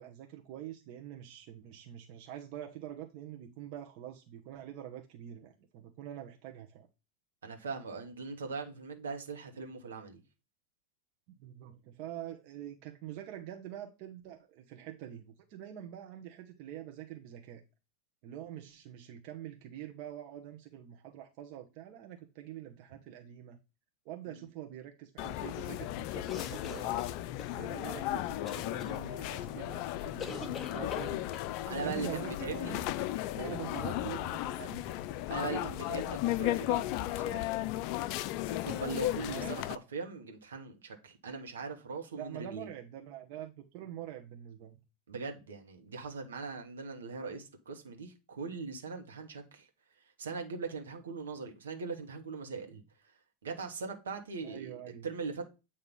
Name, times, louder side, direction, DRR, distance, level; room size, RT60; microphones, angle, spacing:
voice 1, 0.0-6.9 11.3-17.6 18.2-23.6 24.0-27.1 27.5-31.3 31.8-32.9 33.4-35.0 39.3-39.6 42.1-44.8 54.4-55.1, right 11 dB, 50° right, 0.9 m, -45 dB
voice 2, 7.4-10.2 24.3-24.4 31.6-32.8 33.3-33.5 35.3-37.6 38.4-42.7 45.1-49.7 50.2-52.8 53.4-54.8 55.0-55.5, right 4 dB, 75° right, 1.2 m, -40 dB
sound 1, 25.2-39.8, left 14 dB, 50° left, 0.3 m, -35 dB
sound 2, 26.3-27.5 28.5-28.9 30.2-31.5, left 5 dB, 25° left, 1.0 m, -44 dB
8.1 x 2.8 x 5.3 m
figure-of-eight pair, 85°, 0 cm